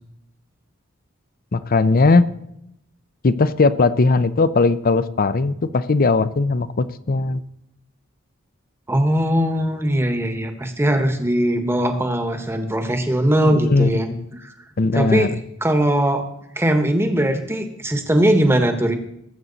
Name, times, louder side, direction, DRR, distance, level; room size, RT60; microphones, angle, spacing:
voice 1, 1.5-2.2 3.2-7.4 13.4-14.3 14.8-15.3, left 3 dB, 45° left, 15 dB, 0.6 m, -18 dB
voice 2, 8.9-14.1 14.4-14.5 14.9-15.3 15.6-16.2 16.6-18.9, right 1 dB, 10° right, 6 dB, 1.2 m, -20 dB
18.5 x 7.8 x 4.0 m, 0.79 s
head